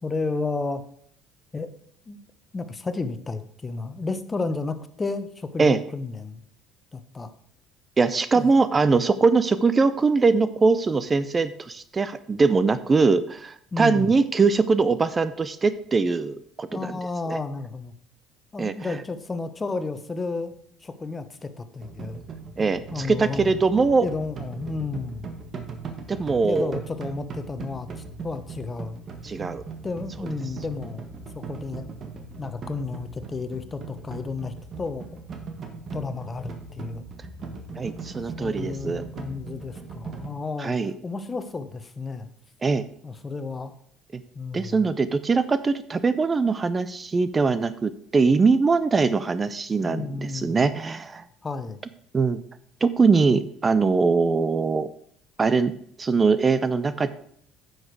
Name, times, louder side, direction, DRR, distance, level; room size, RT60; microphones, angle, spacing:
voice 1, 0.0-0.8 1.5-1.7 2.1-2.2 2.5-6.4 6.9-7.3 8.3-8.5 13.7-14.1 16.7-17.9 18.5-20.5 20.8-22.2 22.9-23.5 24.0-25.3 26.5-27.9 28.2-29.0 29.8-31.1 31.3-31.9 32.4-35.1 35.9-37.0 38.4-40.8 41.0-42.3 43.0-43.7 44.3-44.9 49.8-50.6 51.4-51.8, left 3 dB, 25° left, 11 dB, 1.1 m, -32 dB
voice 2, 8.0-17.0 17.3-17.4 18.6-18.7 22.6-24.1 26.1-26.8 29.2-29.6 37.8-39.0 40.6-40.9 42.6-42.8 44.5-51.2 52.1-52.4 52.8-54.9 55.4-55.7 56.0-57.1, right 4 dB, 30° right, 14 dB, 0.6 m, -22 dB
sound 1, 21.8-40.3, right 4 dB, 45° right, 1.6 m, -39 dB
9.8 x 6.5 x 4.7 m, 0.66 s
hypercardioid pair, 70°, 0 cm